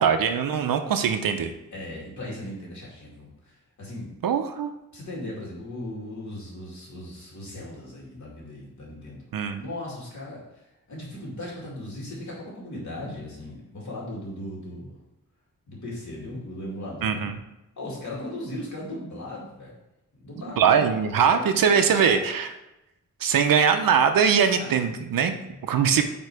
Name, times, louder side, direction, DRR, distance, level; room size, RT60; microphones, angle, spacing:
voice 1, 0.0-1.5 4.2-4.7 9.3-9.6 17.0-17.4 20.6-22.5 23.2-25.3 25.6-26.0, right 7 dB, 85° right, 7 dB, 0.7 m, -21 dB
voice 2, 1.7-4.1 4.9-9.2 9.6-14.9 15.7-17.3 17.8-19.8 20.2-22.4 24.4-24.9 25.5-26.0, left 1 dB, 60° left, -5 dB, 2.4 m, -38 dB
8.8 x 3.0 x 4.8 m, 0.94 s
wide cardioid pair, 175°, 33 cm